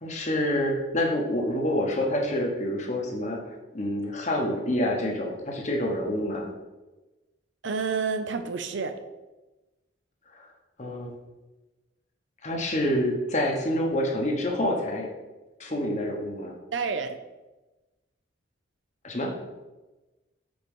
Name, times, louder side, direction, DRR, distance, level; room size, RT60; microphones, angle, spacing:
voice 1, 0.0-6.5 10.3-10.5 10.8-11.2 12.4-15.1 15.6-16.5 19.0-19.3, left 1 dB, 35° left, 1 dB, 1.1 m, -27 dB
voice 2, 7.6-8.9 16.7-17.2, right 5 dB, 70° right, 8 dB, 0.6 m, -29 dB
5.2 x 4.6 x 5.3 m, 1.1 s
head